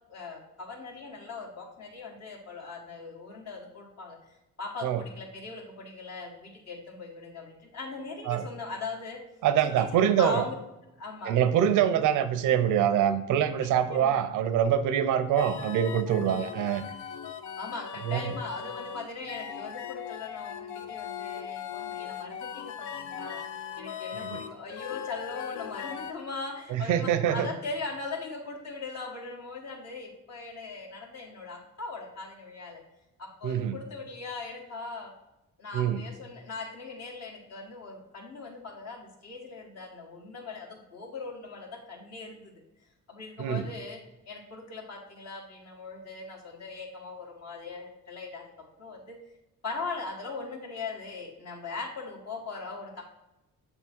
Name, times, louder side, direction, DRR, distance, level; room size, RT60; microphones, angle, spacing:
voice 1, 0.1-9.2 9.8-10.5 11.0-11.3 13.6-14.3 16.4-16.5 17.6-23.4 23.8-32.8 33.2-35.1 35.6-42.6 43.1-44.0 44.3-48.4 48.8-49.2 49.6-53.0, left 3 dB, 55° left, -1 dB, 1.8 m, -40 dB
voice 2, 9.4-10.5 11.3-16.8 18.0-18.4 24.2-24.4 26.7-27.5 33.4-33.7 35.7-36.0 43.4-43.6, right 9 dB, 85° right, 11 dB, 0.6 m, -25 dB
sound 1, 15.4-26.1, left 8 dB, 80° left, 0.6 m, -39 dB
6.9 x 3.5 x 4.5 m, 0.97 s
cardioid pair, 90°, 30 cm